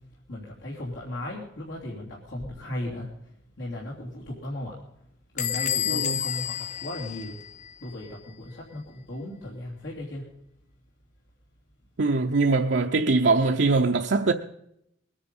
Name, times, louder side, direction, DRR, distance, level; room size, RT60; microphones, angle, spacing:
voice 1, 0.3-3.1 3.6-4.7 5.3-7.3 7.8-10.2, left 1 dB, 85° left, 3.2 m, -36 dB
Bell / Squeak, 5.4-7.9, left 9 dB, 40° left, 0.8 m, -30 dB
voice 2, 5.9-6.2 12.0-14.3, right 3 dB, 70° right, 0.7 m, -22 dB
21.0 x 10.0 x 5.5 m
head